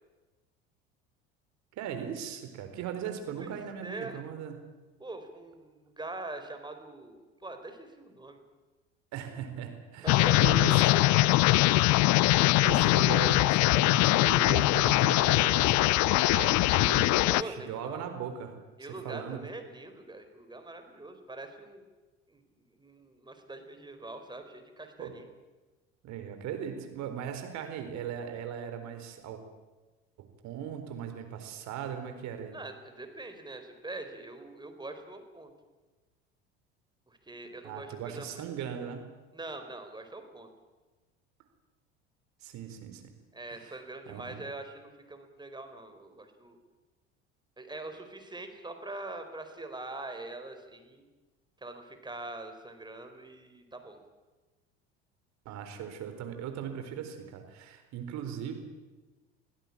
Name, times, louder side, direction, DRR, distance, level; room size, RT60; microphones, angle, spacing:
voice 1, 1.8-4.6 9.1-10.8 12.6-18.5 19.0-19.4 25.0-25.1 26.0-29.4 30.4-32.5 37.6-39.0 42.4-43.0 43.5-43.8 44.1-44.4 55.4-58.5, right 8 dB, 60° right, 7 dB, 4.4 m, -38 dB
voice 2, 3.8-4.2 5.0-8.4 10.0-11.9 17.2-18.1 18.8-21.8 22.3-25.3 32.5-35.5 37.1-38.4 39.3-40.5 43.3-46.6 47.6-51.0 51.6-54.0, right 2 dB, 15° right, 7 dB, 4.4 m, -43 dB
sound 1, 10.1-17.4, left 18 dB, 60° left, 0.7 m, -22 dB
25.5 x 16.5 x 8.6 m, 1.2 s
hypercardioid pair, 70°, 32 cm